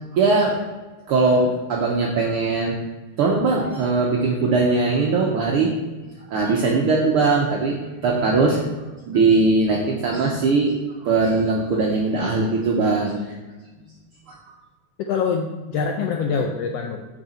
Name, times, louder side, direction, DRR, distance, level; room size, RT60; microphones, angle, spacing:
voice 1, 0.1-0.6 1.1-2.7 3.2-5.7 6.3-8.6 9.1-10.8 11.0-13.3 14.3-14.4, right 3 dB, 70° right, -1 dB, 1.3 m, -20 dB
voice 2, 15.0-17.1, left 5 dB, 80° left, 3 dB, 1.4 m, -25 dB
6.7 x 6.5 x 4.2 m, 1.2 s
omnidirectional pair, 3.4 m